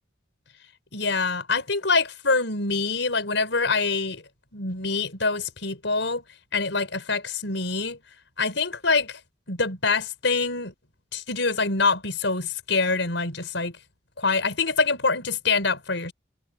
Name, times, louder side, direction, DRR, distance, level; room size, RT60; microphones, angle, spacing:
voice 1, 0.9-4.2 4.5-6.2 6.5-8.0 8.4-9.2 9.5-10.7 11.1-13.7 14.2-16.1, left 4 dB, 80° left, 5.1 m, -25 dB
head